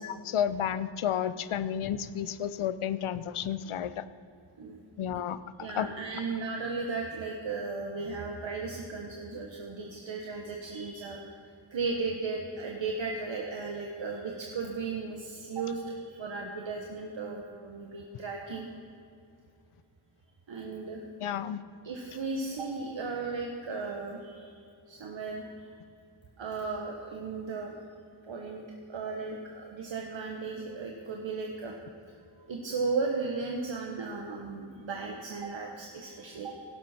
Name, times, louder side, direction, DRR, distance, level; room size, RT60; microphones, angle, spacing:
voice 1, 0.0-4.0 5.0-5.9 21.2-21.6, left 9 dB, 90° left, 14 dB, 0.7 m, -32 dB
voice 2, 5.6-11.3 11.7-18.7 20.5-21.0 21.8-24.6 24.9-25.7 26.4-27.8 28.3-28.6 28.9-31.7 32.5-36.6, right 4 dB, 65° right, 0 dB, 1.4 m, -35 dB
17.5 x 11.5 x 4.4 m, 2.5 s
wide cardioid pair, 135°, 48 cm